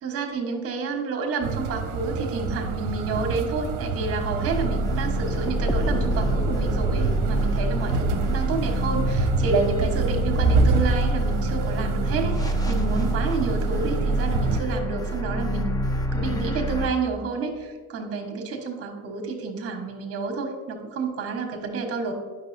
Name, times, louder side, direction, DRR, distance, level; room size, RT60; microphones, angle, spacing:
voice 1, 0.0-15.7 16.1-22.1, right 4 dB, 40° right, 3 dB, 1.3 m, -29 dB
sound 1, 1.4-14.6, right 4 dB, 65° right, 0.7 m, -28 dB
sound 2, 4.4-16.9, right 1 dB, 10° left, 0.4 m, -26 dB
9.6 x 5.8 x 2.6 m, 1.5 s
cardioid pair, 140°, 35 cm